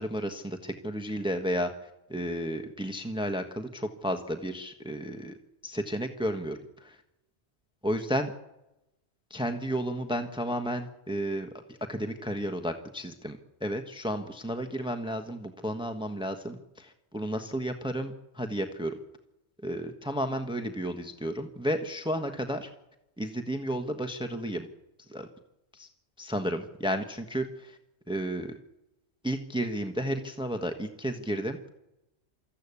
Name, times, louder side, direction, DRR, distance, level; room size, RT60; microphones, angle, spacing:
voice 1, 0.0-5.4 5.6-7.0 7.8-8.3 9.3-19.0 19.6-22.7 23.2-24.7 25.1-25.3 25.7-25.9 26.2-27.8 28.1-28.6 29.2-31.6, equal, 5° right, 6 dB, 1.2 m, -32 dB
25.5 x 14.5 x 8.4 m, 0.92 s
omnidirectional pair, 1.1 m